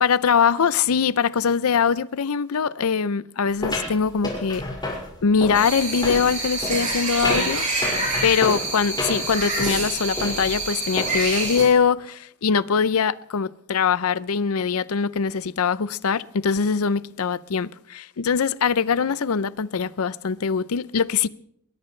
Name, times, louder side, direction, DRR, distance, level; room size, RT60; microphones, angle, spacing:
voice 1, 0.0-4.7 5.2-7.7 8.2-21.3, left 6 dB, 75° left, 0.6 m, -22 dB
sound 1, 3.6-11.7, left 1 dB, 20° left, 5.4 m, -30 dB
sound 2, 5.5-11.6, right 2 dB, 35° right, 6.8 m, -27 dB
21.5 x 20.5 x 3.3 m
head